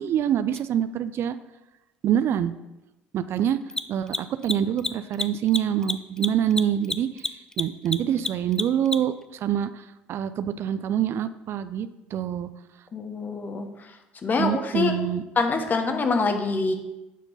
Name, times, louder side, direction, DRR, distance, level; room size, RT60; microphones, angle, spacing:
voice 1, 0.0-1.4 2.0-2.5 3.1-3.6 3.9-12.5 14.4-15.2, right 9 dB, 55° right, 12 dB, 0.4 m, -26 dB
Mechanisms, 0.5-0.6 3.6-9.2, left 2 dB, 10° left, 0.4 m, -29 dB
voice 2, 12.9-13.9 14.2-14.9 15.4-16.7, left 4 dB, 35° left, 6 dB, 1.1 m, -25 dB
8.1 x 4.5 x 5.6 m, 0.99 s
hypercardioid pair, 70°, 5 cm